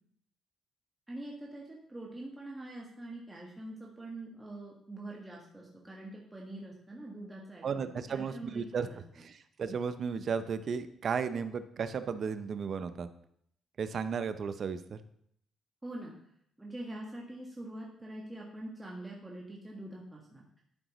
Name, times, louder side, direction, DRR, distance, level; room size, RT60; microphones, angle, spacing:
voice 1, 1.1-9.0 15.8-16.2 16.6-20.6, right 1 dB, 15° right, -3 dB, 1.5 m, -44 dB
voice 2, 7.6-8.9 9.2-13.1 13.8-15.0, right 6 dB, 55° right, 11 dB, 0.6 m, -34 dB
11.5 x 5.0 x 3.1 m, 0.68 s
cardioid pair, 90°, 0 cm